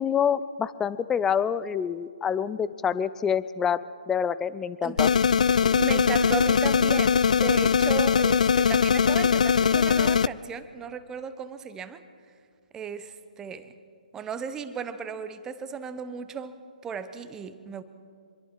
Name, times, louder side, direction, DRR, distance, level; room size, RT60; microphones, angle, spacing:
voice 1, 0.0-3.8 4.1-5.1, left 7 dB, 10° left, 16 dB, 0.5 m, -26 dB
sound 1, 5.0-10.3, left 6 dB, 55° left, 0.5 m, -21 dB
voice 2, 5.5-12.0 12.7-13.7 14.1-16.5 16.8-17.8, right 6 dB, 10° right, 11 dB, 1.0 m, -35 dB
26.0 x 22.0 x 4.8 m, 2.2 s
figure-of-eight pair, 135°, 5 cm